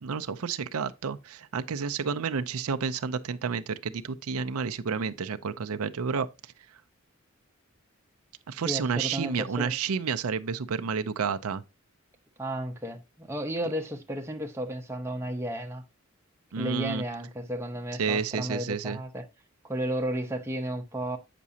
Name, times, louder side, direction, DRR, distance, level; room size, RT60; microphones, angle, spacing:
voice 1, 0.0-6.3 8.5-11.6 16.5-17.0 18.0-19.0, right 6 dB, 90° right, 0.5 m, -30 dB
voice 2, 8.6-9.7 12.4-15.8 16.6-19.3 19.6-21.2, right 1 dB, 10° right, 0.8 m, -33 dB
8.4 x 6.0 x 2.7 m
head